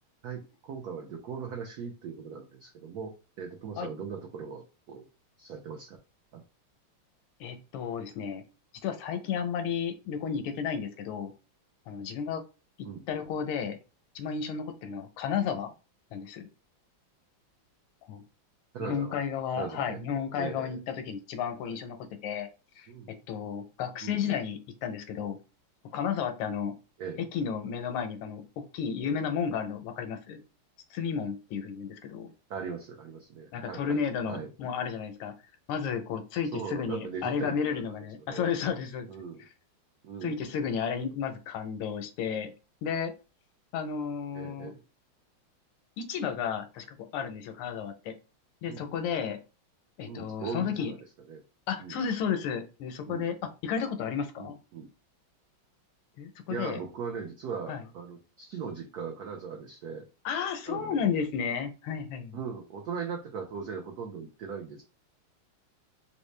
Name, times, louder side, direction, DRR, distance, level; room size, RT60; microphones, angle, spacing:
voice 1, 0.2-5.0 5.4-6.0 6.3-6.4 12.8-13.0 18.7-19.2 19.6-20.0 20.4-20.8 21.7-21.8 22.9-23.2 24.0-24.4 27.0-27.3 32.5-34.5 36.5-37.8 38.3-38.5 39.1-39.5 40.0-40.4 44.3-44.8 48.7-48.9 50.0-51.0 51.3-51.4 51.8-52.0 53.1-53.3 54.4-54.9 56.5-60.1 60.7-61.1 62.3-64.8, right 6 dB, 85° right, 2 dB, 0.8 m, -39 dB
voice 2, 7.4-8.4 8.8-11.3 11.9-12.4 13.1-13.8 14.1-15.7 16.1-16.5 18.1-18.2 18.8-20.8 21.0-22.0 22.2-22.5 22.8-25.4 25.9-26.7 27.3-30.4 30.9-32.3 33.5-35.3 35.7-39.1 40.2-42.5 42.8-43.1 43.7-44.7 46.0-48.1 48.6-49.4 50.0-50.9 51.7-54.6 56.2-56.8 57.7-57.8 60.2-62.4, left 7 dB, 90° left, 7 dB, 1.5 m, -32 dB
4.0 x 2.0 x 3.2 m, 0.31 s
omnidirectional pair, 2.3 m